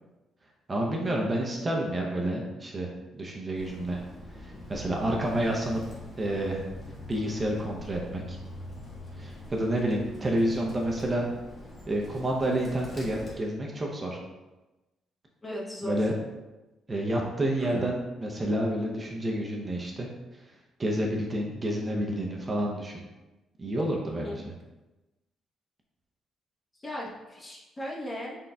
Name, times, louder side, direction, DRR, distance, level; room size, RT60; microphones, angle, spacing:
voice 1, 0.7-4.0 4.4-5.8 6.2-6.6 7.1-8.4 9.2-11.3 11.9-14.2 15.8-16.1 16.9-20.1 20.8-23.0 23.6-24.4, right 1 dB, 30° right, -1 dB, 0.6 m, -29 dB
Bird, 3.5-13.3, left 1 dB, 45° left, 1.1 m, -44 dB
voice 2, 15.4-16.1 17.6-17.9 24.2-24.4 26.8-28.4, left 1 dB, 25° left, -4 dB, 1.0 m, -37 dB
3.9 x 3.8 x 2.3 m, 1.1 s
cardioid pair, 90°, 0 cm